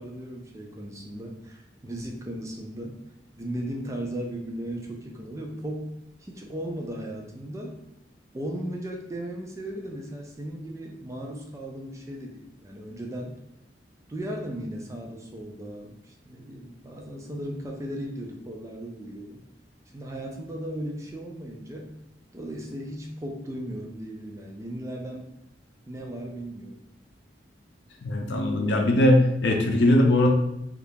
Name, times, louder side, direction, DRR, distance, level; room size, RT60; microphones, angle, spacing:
voice 1, 0.0-3.0 3.4-5.9 6.2-7.8 8.3-13.4 14.1-19.4 19.9-21.9 22.3-25.2 25.9-26.8, right 1 dB, 15° right, 0 dB, 0.4 m, -36 dB
voice 2, 28.0-30.3, left 1 dB, 70° left, 2 dB, 0.5 m, -20 dB
2.7 x 2.4 x 3.5 m, 0.80 s
head